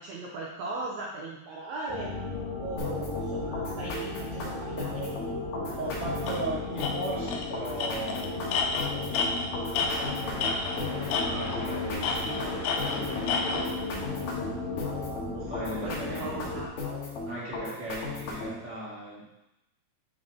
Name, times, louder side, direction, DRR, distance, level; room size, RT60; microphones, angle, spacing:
voice 1, 0.0-2.1 2.6-5.1 15.8-16.7, right 3 dB, 85° right, -3 dB, 1.6 m, -38 dB
sound 1, 1.9-16.7, left 3 dB, 40° left, 1.6 m, -35 dB
sound 2, 2.8-18.6, left 3 dB, 60° left, 2.2 m, -37 dB
voice 2, 5.7-8.5 9.1-10.4 11.1-14.3 15.3-16.3 17.2-19.3, right 2 dB, 10° right, -9 dB, 0.9 m, -38 dB
Tools, 6.3-6.4 6.8-6.9 7.3-7.5 7.8-10.8 11.1-11.6 12.0-13.7, left 5 dB, 85° left, 2.5 m, -30 dB
7.7 x 4.0 x 3.6 m, 0.92 s
omnidirectional pair, 4.3 m